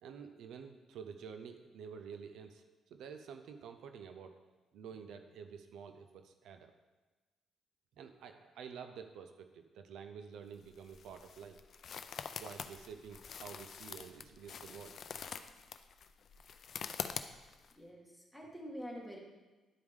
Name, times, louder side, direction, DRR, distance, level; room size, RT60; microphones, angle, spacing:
voice 1, 0.0-2.6 2.9-4.3 4.7-6.7 8.0-11.6 12.4-15.0 15.4-15.5, right 6 dB, 80° right, 7 dB, 0.5 m, -49 dB
sound 1, 10.5-17.7, left 7 dB, 55° left, 0.4 m, -45 dB
voice 2, 17.8-19.2, equal, ahead, -2 dB, 1.9 m, -46 dB
11.0 x 4.8 x 3.6 m, 1.2 s
cardioid pair, 90°, 0 cm